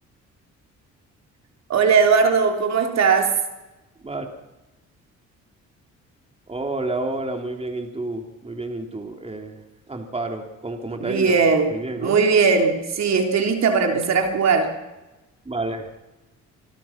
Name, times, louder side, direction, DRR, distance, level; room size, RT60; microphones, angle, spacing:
voice 1, 1.7-3.3 11.0-14.7, right 5 dB, 60° right, 4 dB, 3.5 m, -19 dB
voice 2, 6.5-11.4 11.7-12.2 15.4-15.9, right 2 dB, 20° right, 3 dB, 3.4 m, -30 dB
27.0 x 18.0 x 6.0 m, 1.0 s
cardioid pair, 90°, 30 cm